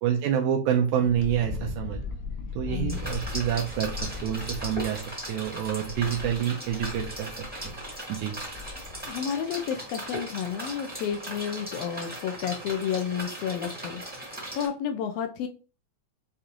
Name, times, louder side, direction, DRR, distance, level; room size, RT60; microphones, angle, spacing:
voice 1, 0.0-2.0 2.6-5.0 5.3-7.8 8.1-8.4, right 9 dB, 85° right, 1 dB, 2.0 m, -27 dB
Wind, 1.0-9.1, left 4 dB, 70° left, 1.5 m, -38 dB
voice 2, 2.7-3.0 9.0-15.5, left 8 dB, 90° left, 6 dB, 1.4 m, -31 dB
sound 1, 2.9-14.7, right 1 dB, 5° right, 1.1 m, -38 dB
6.8 x 2.4 x 3.0 m, 0.35 s
omnidirectional pair, 3.4 m